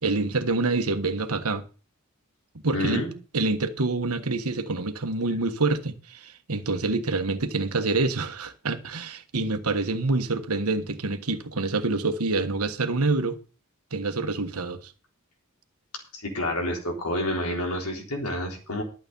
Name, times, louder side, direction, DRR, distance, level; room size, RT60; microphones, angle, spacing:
voice 1, 0.0-1.6 2.6-3.0 3.3-13.4 13.9-14.9, right 3 dB, 80° right, 1.4 m, -26 dB
voice 2, 2.7-3.1 16.1-18.8, left 1 dB, 80° left, 3.9 m, -29 dB
12.0 x 7.8 x 5.4 m
head